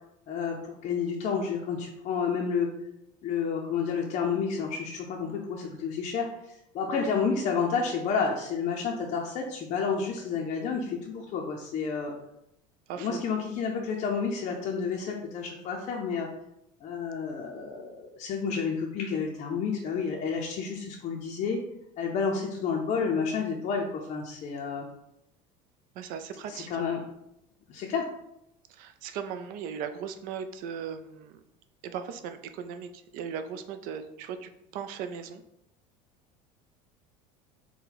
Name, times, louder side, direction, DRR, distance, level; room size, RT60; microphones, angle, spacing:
voice 1, 0.3-2.7 3.2-12.1 13.0-16.3 16.8-21.6 22.0-24.9 26.5-27.0 27.7-28.1, left 5 dB, 45° left, 0 dB, 0.5 m, -30 dB
voice 2, 12.9-13.2 26.0-26.8 28.7-31.4 31.8-35.4, right 7 dB, 60° right, 9 dB, 0.4 m, -38 dB
4.2 x 2.2 x 3.9 m, 0.82 s
supercardioid pair, 125°, 17 cm